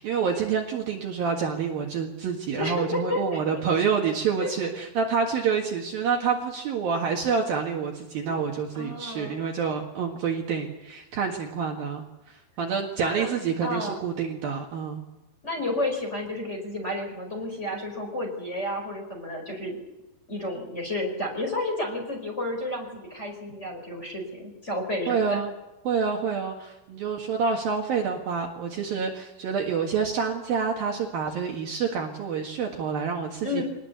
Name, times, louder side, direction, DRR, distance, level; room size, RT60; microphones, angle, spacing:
voice 1, 0.0-15.0 25.1-25.5 25.8-33.6, right 6 dB, 60° right, 1 dB, 3.2 m, -28 dB
voice 2, 2.5-3.4 4.4-4.5 8.2-8.4 8.7-9.4 13.0-13.3 13.6-14.0 15.4-19.8 20.3-25.4 33.4-33.6, left 1 dB, 15° left, 0 dB, 4.7 m, -31 dB
24.0 x 19.5 x 8.2 m, 0.98 s
omnidirectional pair, 5.4 m